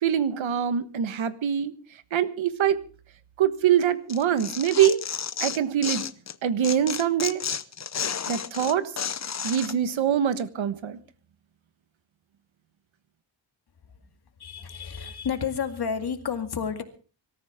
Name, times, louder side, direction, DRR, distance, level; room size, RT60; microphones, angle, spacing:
voice 1, 0.0-1.7 2.1-2.8 3.4-5.0 5.4-6.0 6.4-7.4 8.3-8.9 9.4-11.0, right 9 dB, 85° right, 12 dB, 1.4 m, -24 dB
Tearing, 4.1-6.3 6.6-9.7, left 7 dB, 35° left, 0.8 m, -32 dB
voice 2, 14.4-16.8, left 7 dB, 55° left, 7 dB, 2.2 m, -30 dB
25.0 x 14.0 x 3.6 m, 0.37 s
wide cardioid pair, 145°, 46 cm